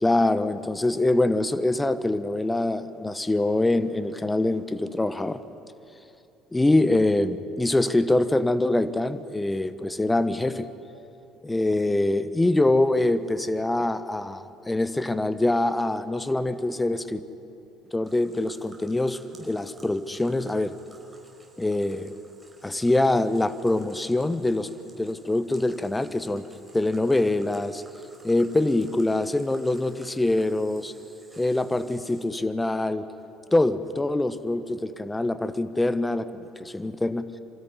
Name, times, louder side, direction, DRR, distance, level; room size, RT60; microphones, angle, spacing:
voice 1, 0.0-5.4 6.5-10.7 11.4-17.2 17.9-20.7 21.6-22.1 22.6-24.7 25.0-26.5 26.7-27.8 28.2-30.9 31.4-33.1 33.5-36.3 36.6-37.3, left 2 dB, 15° left, 13 dB, 1.2 m, -24 dB
sound 1, 18.0-32.2, right 2 dB, 15° right, 4.9 m, -55 dB
25.5 x 13.5 x 10.0 m, 2.8 s
hypercardioid pair, 60°, 0 cm